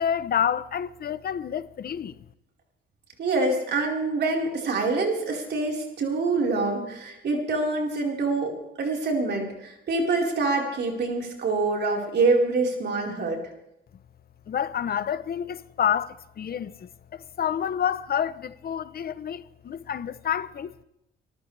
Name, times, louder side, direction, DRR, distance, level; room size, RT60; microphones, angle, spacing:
voice 1, 0.0-2.2 14.5-20.8, left 8 dB, 50° left, 0.9 m, -29 dB
voice 2, 3.2-13.4, right 3 dB, 60° right, 4.7 m, -25 dB
25.5 x 14.0 x 3.4 m
cardioid pair, 90°, 20 cm